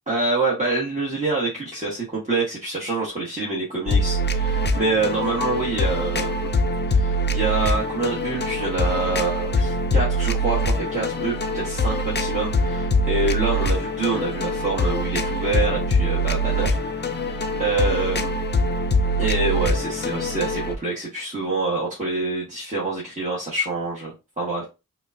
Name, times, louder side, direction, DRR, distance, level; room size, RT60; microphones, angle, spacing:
voice 1, 0.1-6.5 6.9-16.8 17.1-18.4 19.2-24.6, right 3 dB, 20° right, -6 dB, 1.1 m, -26 dB
sound 1, 3.9-20.8, equal, 35° left, 0.4 m, -23 dB
4.8 x 2.2 x 2.5 m, 0.28 s
wide cardioid pair, 65°, 34 cm